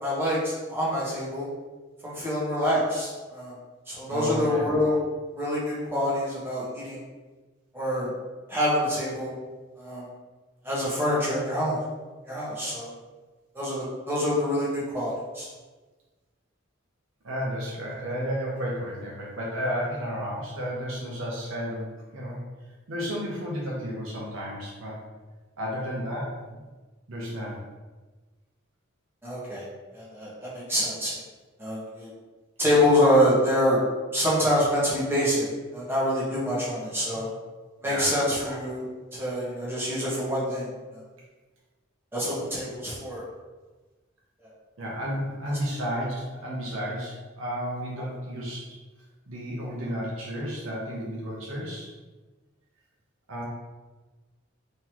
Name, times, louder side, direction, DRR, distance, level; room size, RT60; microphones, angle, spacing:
voice 1, 0.0-1.5 2.0-3.5 3.9-5.0 5.4-7.0 7.7-8.1 8.5-9.3 9.8-10.1 10.6-11.8 12.2-12.9 13.5-15.5 29.2-29.6 29.9-31.1 31.6-32.1 32.6-33.8 34.1-35.5 35.7-37.3 37.8-38.9 39.1-41.0 42.1-43.2 44.4-44.5, left 1 dB, 10° right, -8 dB, 1.3 m, -26 dB
voice 2, 4.1-4.7 17.2-21.9 22.1-22.4 22.9-25.0 25.6-26.7 27.1-27.6 37.1-37.2 37.8-38.1 44.8-48.6 49.3-51.9 53.3-53.4, equal, 75° right, -5 dB, 0.8 m, -32 dB
3.8 x 3.2 x 2.9 m, 1.3 s
head